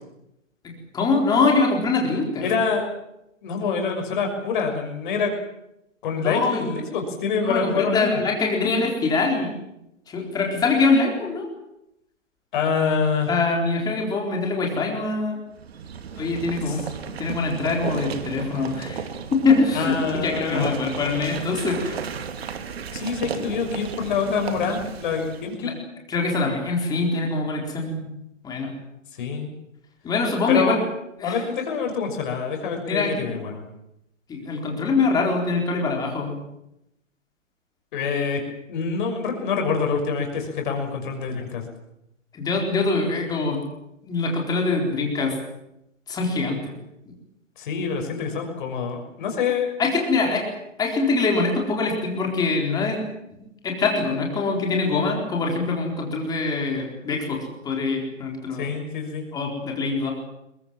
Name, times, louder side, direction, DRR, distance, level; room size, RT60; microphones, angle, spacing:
voice 1, 0.6-2.5 6.2-6.7 7.5-9.6 10.1-11.5 13.3-15.4 16.2-16.9 17.2-19.0 19.3-22.0 25.6-25.7 26.1-28.1 28.4-28.7 30.0-30.8 31.2-31.4 32.9-33.1 34.3-36.4 42.3-43.6 44.0-45.3 46.1-46.7 49.8-50.4 50.8-53.0 53.3-58.7 59.3-60.1, left 3 dB, 10° left, 0 dB, 4.2 m, -23 dB
voice 2, 2.4-2.9 3.4-5.4 6.0-8.2 12.5-13.3 16.7-16.8 19.7-20.7 22.9-25.8 29.1-29.5 30.5-30.8 31.2-33.6 37.9-38.4 38.7-41.7 47.6-49.7 58.5-59.3, left 5 dB, 40° left, 3 dB, 6.3 m, -26 dB
sound 1, 15.5-25.5, right 6 dB, 50° right, 2.4 m, -34 dB
22.5 x 22.0 x 7.6 m, 0.84 s
hypercardioid pair, 150°, 39 cm